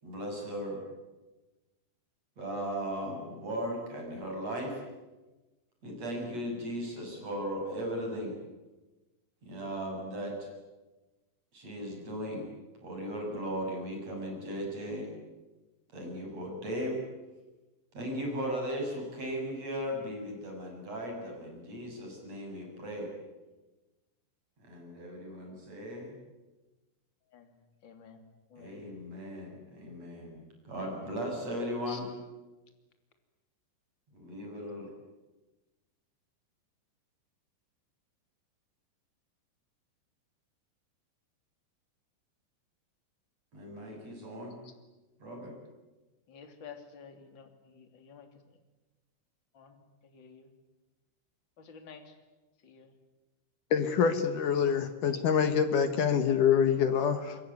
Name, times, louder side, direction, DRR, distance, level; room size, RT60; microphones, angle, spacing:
voice 1, 0.0-0.8 2.4-4.8 5.8-8.3 9.4-10.3 11.5-12.5 12.8-15.1 15.9-17.0 17.9-23.1 24.6-26.2 28.6-32.1 34.3-34.8 43.5-44.6 45.2-45.5, equal, 35° right, 1 dB, 8.4 m, -37 dB
voice 2, 28.5-28.8 31.9-32.0 44.6-44.7 46.3-48.3 49.5-50.5 51.6-52.1 52.6-52.9 54.5-54.6, left 6 dB, 30° left, 6 dB, 2.9 m, -51 dB
voice 3, 53.7-57.4, left 7 dB, 65° left, 9 dB, 2.2 m, -26 dB
27.0 x 22.5 x 9.5 m, 1.1 s
omnidirectional pair, 5.3 m